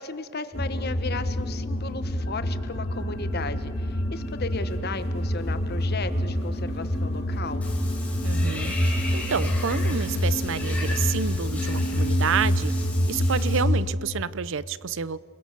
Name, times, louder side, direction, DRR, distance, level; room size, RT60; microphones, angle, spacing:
voice 1, 0.0-7.6, left 3 dB, 45° left, 11 dB, 1.2 m, -35 dB
sound 1, 0.5-13.9, equal, 30° left, 2.8 m, -27 dB
sound 2, 2.2-13.0, equal, 70° left, 6.2 m, -38 dB
Water / Bathtub (filling or washing), 7.6-13.6, left 2 dB, 5° left, 4.0 m, -37 dB
voice 2, 8.2-12.7 13.1-15.2, right 6 dB, 60° right, 19 dB, 0.6 m, -29 dB
30.0 x 21.5 x 6.7 m, 2.2 s
head